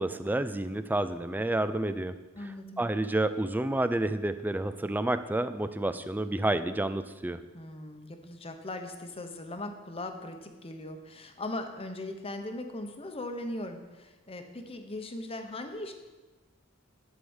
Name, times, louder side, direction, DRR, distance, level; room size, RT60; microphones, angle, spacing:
voice 1, 0.0-2.2 2.8-7.4, right 1 dB, 10° right, 12 dB, 0.4 m, -29 dB
voice 2, 2.3-2.8 7.5-15.9, left 2 dB, 30° left, 6 dB, 0.9 m, -39 dB
11.0 x 4.9 x 7.1 m, 1.2 s
head